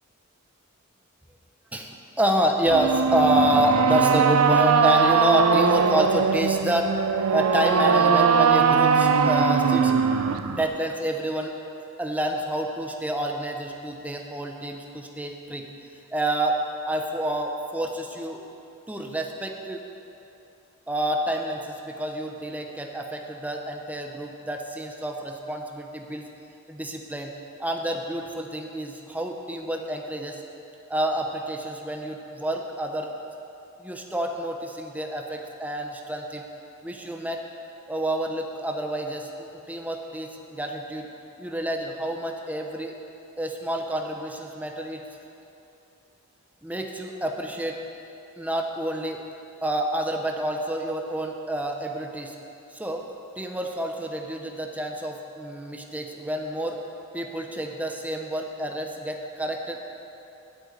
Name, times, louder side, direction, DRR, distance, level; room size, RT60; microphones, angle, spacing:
voice 1, 1.7-7.0 7.3-9.9 10.5-11.5 12.0-15.7 16.1-18.4 18.9-19.9 20.9-26.2 26.7-27.3 27.6-30.4 30.9-33.1 33.8-36.5 36.8-37.4 37.9-41.1 41.4-42.9 43.4-45.0 46.6-47.8 48.4-49.2 49.6-52.4 52.7-53.1 53.4-56.8 57.1-60.0, right 1 dB, 5° right, 2 dB, 0.7 m, -28 dB
sound 1, 2.7-10.7, right 6 dB, 70° right, 0.5 m, -20 dB
8.8 x 7.9 x 8.1 m, 2.8 s
head